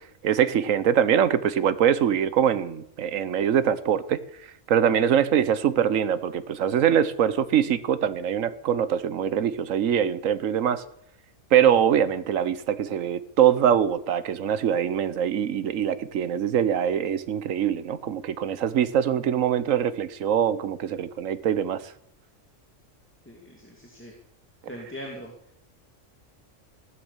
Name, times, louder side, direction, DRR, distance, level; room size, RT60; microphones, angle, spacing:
voice 1, 0.2-4.2 4.7-10.8 11.5-21.9, right 9 dB, 85° right, 14 dB, 1.3 m, -23 dB
voice 2, 23.3-24.1 24.7-25.3, equal, 10° left, 0 dB, 2.4 m, -40 dB
16.0 x 11.5 x 7.1 m, 0.71 s
omnidirectional pair, 1.3 m